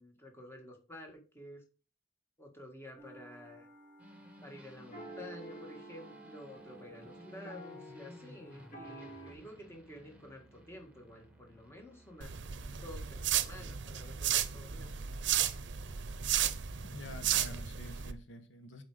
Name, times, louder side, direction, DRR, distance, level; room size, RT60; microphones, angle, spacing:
voice 1, 0.0-1.6 2.4-3.7 4.4-12.3 12.8-14.9, left 1 dB, 15° left, 1.7 m, -51 dB
sound 1, 3.0-9.3, right 1 dB, 45° left, 2.2 m, -50 dB
sound 2, 4.0-13.4, right 1 dB, 5° right, 1.4 m, -57 dB
sound 3, 12.2-18.1, right 10 dB, 65° right, 0.6 m, -34 dB
voice 2, 16.9-18.8, left 1 dB, 80° left, 1.0 m, -48 dB
7.7 x 4.8 x 4.9 m
head